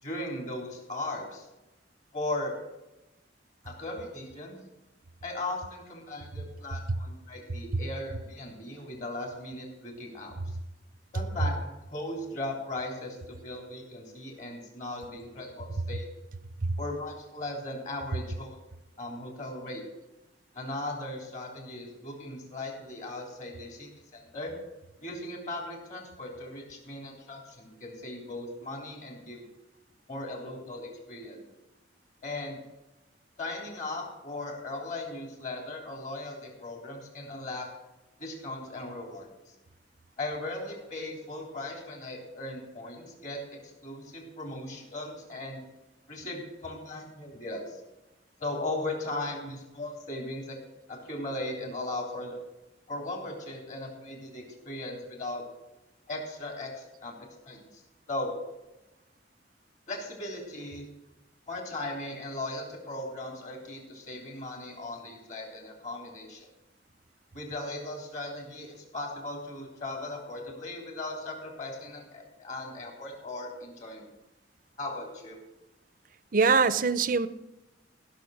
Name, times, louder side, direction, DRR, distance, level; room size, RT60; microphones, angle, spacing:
voice 1, 0.0-1.5 2.1-2.5 3.6-4.6 5.2-10.6 11.1-16.0 16.8-18.6 19.0-19.8 20.5-24.5 25.0-29.5 30.1-31.4 32.2-32.6 33.4-37.7 38.2-39.3 40.2-45.6 46.1-47.8 48.4-50.6 50.9-52.4 52.9-55.4 56.1-57.8 58.1-58.3 59.9-60.9 61.5-66.5 67.3-74.1 74.8-75.4, left 2 dB, 40° left, 0 dB, 3.5 m, -38 dB
voice 2, 76.3-77.3, right 5 dB, 45° right, 15 dB, 0.6 m, -23 dB
15.5 x 6.5 x 6.5 m, 0.99 s
head